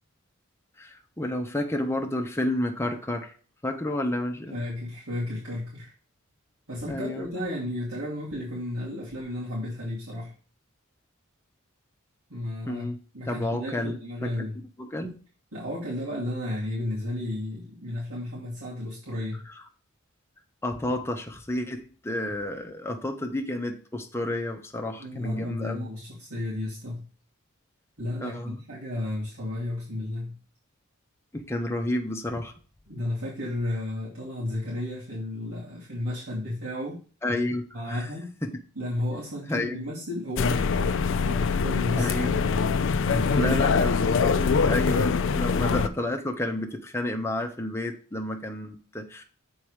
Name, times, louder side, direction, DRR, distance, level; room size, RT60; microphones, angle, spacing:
voice 1, 0.8-3.3 3.6-4.6 6.8-7.3 12.6-13.0 13.2-14.3 14.8-15.1 19.5-19.6 20.6-25.9 28.2-28.6 31.3-32.5 37.2-37.6 37.9-38.1 38.4-38.5 39.5-39.8 42.0-42.4 43.3-49.2, left 1 dB, 10° left, 3 dB, 1.0 m, -31 dB
voice 2, 4.5-5.9 6.7-10.3 12.3-14.6 15.5-19.4 25.0-27.1 28.0-30.4 32.9-37.0 37.7-38.3 38.8-41.0 41.2-42.1 43.0-43.6, left 1 dB, 75° right, -8 dB, 2.8 m, -33 dB
sound 1, 40.4-45.9, left 5 dB, 60° left, 0.5 m, -23 dB
7.0 x 4.5 x 4.8 m, 0.39 s
head